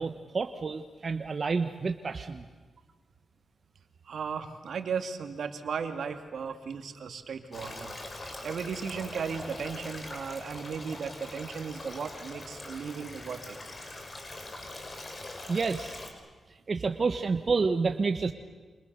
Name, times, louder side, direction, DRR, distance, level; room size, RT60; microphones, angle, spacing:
voice 1, 0.0-2.4 15.5-16.0 16.7-18.3, right 4 dB, 50° right, 7 dB, 1.3 m, -29 dB
voice 2, 4.1-7.9 8.4-13.6, right 6 dB, 75° right, 7 dB, 2.4 m, -36 dB
Stream, 7.5-16.1, left 2 dB, 35° left, 5.6 m, -42 dB
29.0 x 27.5 x 6.9 m, 1.3 s
cardioid pair, 70°, 0 cm